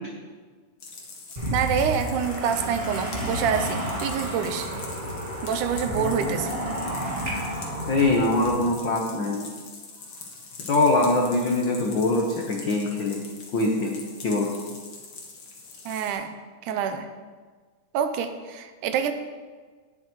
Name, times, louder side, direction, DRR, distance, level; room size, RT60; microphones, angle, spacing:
sound 1, 0.8-16.1, left 4 dB, 50° left, 1.7 m, -43 dB
sound 2, 1.4-8.6, equal, 25° right, 1.4 m, -31 dB
voice 1, 1.5-4.7 5.4-6.6 15.9-16.3 16.6-17.1 17.9-19.1, right 7 dB, 85° right, 8 dB, 2.2 m, -26 dB
voice 2, 6.0-6.4 7.9-9.5 10.7-13.2 13.5-14.6, left 2 dB, 85° left, 0 dB, 1.0 m, -23 dB
17.5 x 7.4 x 3.1 m, 1.5 s
omnidirectional pair, 3.6 m